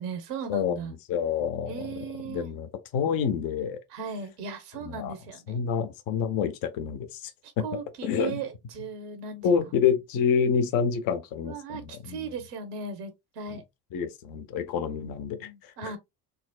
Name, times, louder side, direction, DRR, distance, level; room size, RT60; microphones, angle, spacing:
voice 1, 0.0-0.9 1.7-2.5 3.9-5.7 7.4-9.5 11.4-13.6 14.8-16.0, right 5 dB, 80° right, 1.1 m, -37 dB
voice 2, 1.1-1.8 2.3-3.8 4.8-5.1 5.5-7.3 7.6-7.7 8.0-8.4 9.4-12.2 13.5-13.6 13.9-15.5 15.8-16.0, left 7 dB, 45° left, 0.6 m, -27 dB
4.1 x 2.0 x 2.3 m
hypercardioid pair, 65°, 47 cm